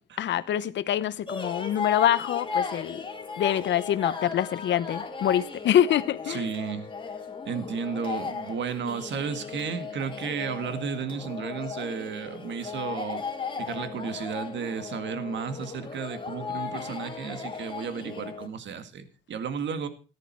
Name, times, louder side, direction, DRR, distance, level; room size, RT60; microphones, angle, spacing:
voice 1, 0.2-3.0 3.4-6.5, left 11 dB, 65° left, 0.8 m, -25 dB
sound 1, 1.3-18.5, left 5 dB, 25° left, 2.6 m, -36 dB
voice 2, 6.3-6.9 7.5-13.2 13.6-19.9, right 6 dB, 65° right, 1.8 m, -33 dB
14.5 x 10.5 x 4.6 m
cardioid pair, 90°, 20 cm